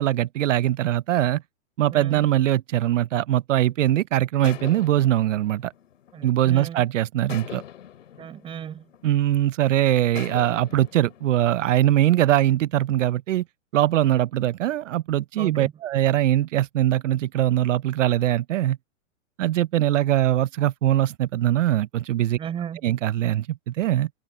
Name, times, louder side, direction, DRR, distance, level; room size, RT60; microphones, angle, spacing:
voice 1, 0.0-1.4 1.8-5.7 6.2-7.6 9.0-13.4 13.7-18.8 19.4-22.4 22.8-24.1, right 13 dB, 75° right, 0.7 m, -22 dB
voice 2, 1.9-2.3 6.1-6.9 8.2-8.9 15.4-15.7 22.4-22.9, right 9 dB, 15° right, 5.2 m, -35 dB
sound 1, 4.4-6.7 7.3-9.5 10.2-12.4, left 10 dB, 75° left, 3.1 m, -43 dB
hypercardioid pair, 165°, 38 cm